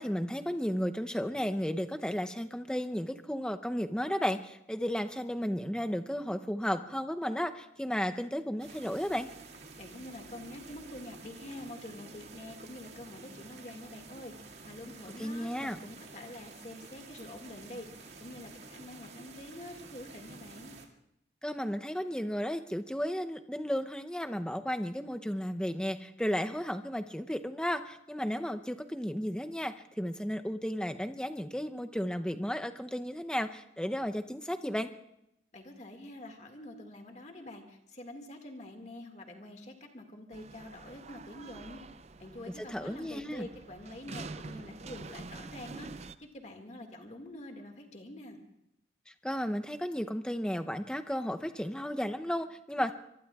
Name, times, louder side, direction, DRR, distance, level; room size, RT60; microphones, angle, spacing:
voice 1, 0.0-9.3 15.2-15.8 21.4-34.9 42.6-43.5 49.2-52.9, equal, 5° left, 7 dB, 0.6 m, -34 dB
sound 1, 8.6-20.9, right 3 dB, 75° right, 2.1 m, -50 dB
voice 2, 9.8-17.9 18.2-20.8 35.5-41.8 42.2-45.9 46.2-48.4, left 1 dB, 40° left, 4 dB, 1.9 m, -46 dB
sound 2, 40.3-46.1, right 3 dB, 40° right, 0.5 m, -46 dB
24.5 x 23.0 x 2.4 m, 0.80 s
head